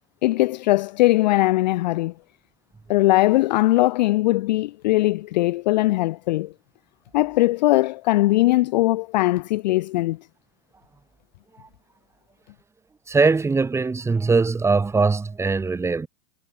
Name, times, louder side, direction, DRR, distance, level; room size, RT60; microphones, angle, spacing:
voice 1, 0.2-2.1 2.9-6.5 7.1-10.2, left 18 dB, 40° left, 0.4 m, -20 dB
voice 2, 13.1-16.1, right 4 dB, 5° right, 2.9 m, -21 dB
supercardioid pair, 170°, 37 cm